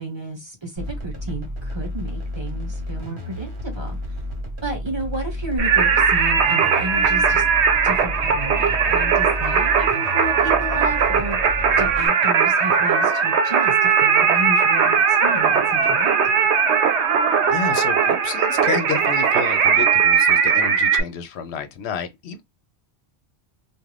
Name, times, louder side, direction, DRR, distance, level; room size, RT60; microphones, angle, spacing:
voice 1, 0.0-4.2 4.6-7.4 7.8-11.4 11.8-16.1, right 2 dB, 25° right, 0.9 m, -32 dB
sound 1, 0.8-12.1, left 1 dB, 55° right, 1.1 m, -31 dB
Singing, 5.6-21.0, right 6 dB, 85° right, 0.9 m, -19 dB
voice 2, 17.5-22.4, left 7 dB, 80° left, 0.8 m, -30 dB
2.4 x 2.3 x 3.1 m
omnidirectional pair, 1.1 m